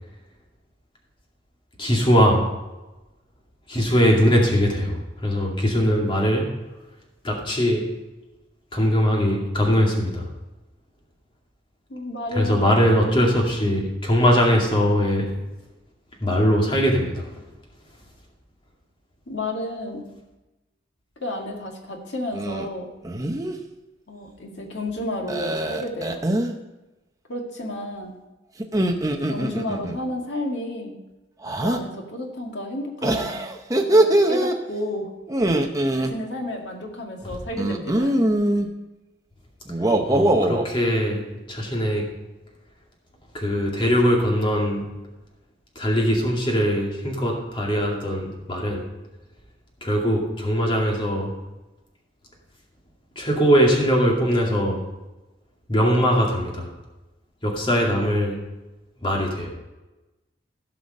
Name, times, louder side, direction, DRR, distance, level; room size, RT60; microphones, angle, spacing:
voice 1, 1.8-2.5 3.7-6.5 7.2-7.9 8.7-10.3 12.3-15.3 16.2-17.3 40.0-42.0 43.3-44.8 45.8-48.8 49.8-51.3 53.2-54.8 55.7-56.7 57.4-58.4 59.0-59.5, equal, 25° left, -1 dB, 2.4 m, -21 dB
voice 2, 11.9-12.7 19.3-20.1 21.2-22.9 24.1-26.3 27.3-28.2 29.2-31.0 31.6-33.4 33.7-35.1 35.9-38.2, left 1 dB, 65° left, 1 dB, 2.0 m, -31 dB
sound 1, 22.3-22.7 23.0-23.6 25.3-26.5 28.6-30.0 31.4-31.8 33.0-34.6 35.3-36.1 37.6-38.7 39.7-40.7, right 1 dB, 20° right, 0.8 m, -22 dB
15.5 x 5.7 x 5.3 m, 1.1 s
head